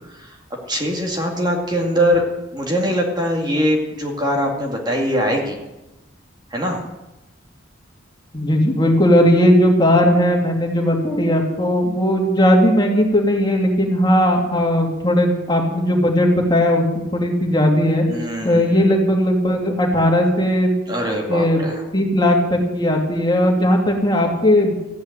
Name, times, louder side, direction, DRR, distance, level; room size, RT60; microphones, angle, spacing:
voice 1, 0.7-2.2 2.5-5.6 6.5-6.8 18.1-18.7 20.9-21.8, equal, 20° right, 1 dB, 2.2 m, -22 dB
voice 2, 8.3-16.8 17.1-18.0 18.4-20.7 21.3-21.6 21.9-24.7, equal, 20° left, 0 dB, 2.8 m, -17 dB
15.0 x 9.5 x 9.2 m, 0.99 s
head